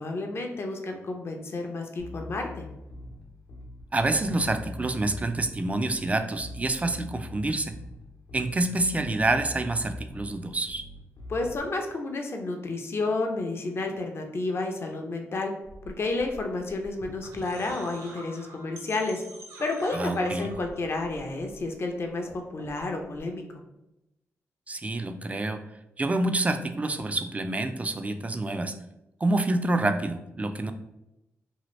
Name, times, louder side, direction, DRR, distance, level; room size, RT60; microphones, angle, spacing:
voice 1, 0.0-2.7 11.3-15.5 15.9-19.2 19.6-23.4, left 2 dB, 50° left, 3 dB, 0.5 m, -31 dB
Bass guitar, 2.0-11.6, left 2 dB, 80° left, 0.9 m, -42 dB
voice 2, 3.9-7.8 8.3-10.8 19.9-20.5 24.7-25.6 26.0-28.7 29.2-30.7, right 2 dB, 25° right, 8 dB, 0.3 m, -27 dB
sound 1, 15.6-21.9 22.1-23.2, right 1 dB, 90° right, 0.5 m, -46 dB
2.8 x 2.5 x 3.0 m, 0.90 s
cardioid pair, 55°, 5 cm